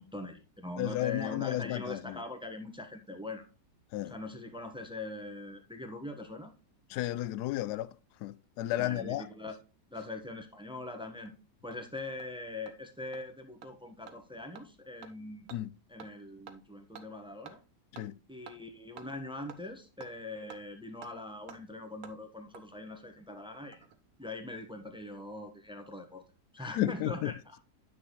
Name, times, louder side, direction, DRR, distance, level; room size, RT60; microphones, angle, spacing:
voice 1, 0.0-3.4 4.0-6.5 8.7-9.6 9.9-11.3 11.6-15.5 15.9-17.6 18.3-23.8 24.2-26.2 26.5-27.6, left 2 dB, 5° right, 1.0 m, -42 dB
voice 2, 0.8-2.0 3.9-4.1 6.9-7.9 8.2-9.2 15.5-15.7 17.9-18.1 26.8-27.3, left 14 dB, 75° left, 1.1 m, -32 dB
Hammer, 10.8-10.9 11.3-11.4 11.7-11.8 12.2-12.3 12.7-12.8 13.1-13.2 13.6-13.7 14.1-14.2 14.5-14.6 15.0-15.1 15.5-15.6 16.0-16.1 16.5-16.6 16.9-17.1 17.5-17.6 18.0-18.1 18.5-18.6 19.0-19.1 19.5-19.6 20.0-20.1 20.5-20.6 21.0-21.1 21.5-21.6 22.0-22.1 22.5-22.6 23.5-24.0 24.2-24.3, right 7 dB, 60° right, 1.3 m, -49 dB
9.2 x 6.3 x 3.1 m
omnidirectional pair, 1.8 m